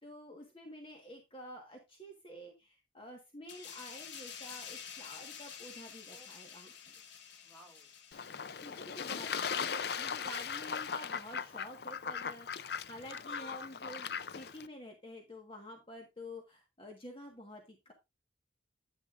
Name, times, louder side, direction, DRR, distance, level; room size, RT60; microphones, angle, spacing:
voice 1, 0.0-6.9 8.6-17.9, left 1 dB, 30° left, 1 dB, 1.5 m, -50 dB
sound 1, 3.5-10.7 11.0-11.2, left 7 dB, 75° left, 1.3 m, -50 dB
voice 2, 7.4-7.9 8.3-9.0, right 1 dB, ahead, -3 dB, 3.4 m, -61 dB
Fowl / Bird / Water, 8.1-14.7, left 6 dB, 60° left, 0.5 m, -38 dB
10.0 x 9.7 x 2.5 m, 0.23 s
head